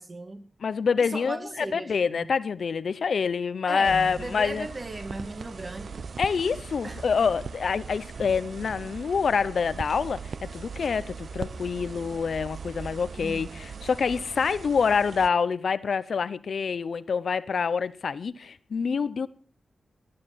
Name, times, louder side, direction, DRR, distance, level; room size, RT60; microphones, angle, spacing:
voice 1, 0.0-0.4 1.0-2.3 3.6-6.0 6.8-7.0 13.2-13.6, right 2 dB, 30° right, 2.0 m, -37 dB
voice 2, 0.6-4.7 6.2-19.3, left 6 dB, 70° left, 0.7 m, -26 dB
sound 1, 3.8-15.3, right 5 dB, 65° right, 0.8 m, -40 dB
19.0 x 9.7 x 6.0 m
wide cardioid pair, 105°, 0 cm